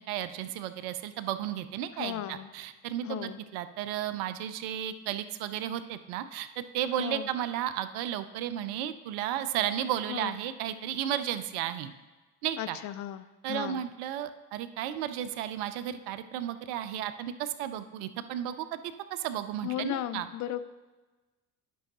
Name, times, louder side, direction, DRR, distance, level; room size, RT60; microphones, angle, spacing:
voice 1, 0.0-11.9 12.4-12.8 13.4-18.8 19.1-20.3, right 11 dB, 55° right, 12 dB, 0.6 m, -33 dB
voice 2, 2.0-2.5 3.0-3.4 7.0-7.3 10.1-10.4 12.6-13.8 19.6-20.6, left 13 dB, 40° left, 12 dB, 0.5 m, -36 dB
11.0 x 5.4 x 2.9 m, 1.2 s
figure-of-eight pair, 55°, 45 cm